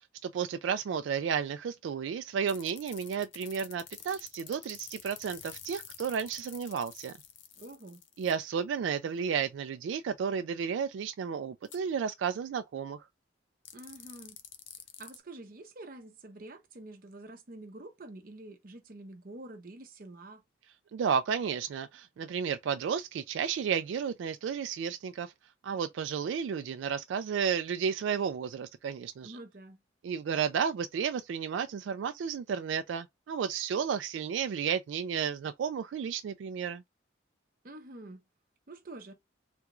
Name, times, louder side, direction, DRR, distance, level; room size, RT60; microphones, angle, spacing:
voice 1, 0.2-7.1 8.2-13.0 20.9-25.3 25.6-29.4 30.0-36.8, right 7 dB, 80° right, 0.3 m, -32 dB
sound 1, 2.5-8.4 11.7-11.8 13.7-15.2, left 10 dB, 80° left, 0.6 m, -48 dB
voice 2, 7.6-8.0 13.7-14.4 15.0-20.4 29.2-29.8 37.6-38.2 38.7-39.1, right 2 dB, 50° right, 0.7 m, -47 dB
3.4 x 2.4 x 2.9 m
head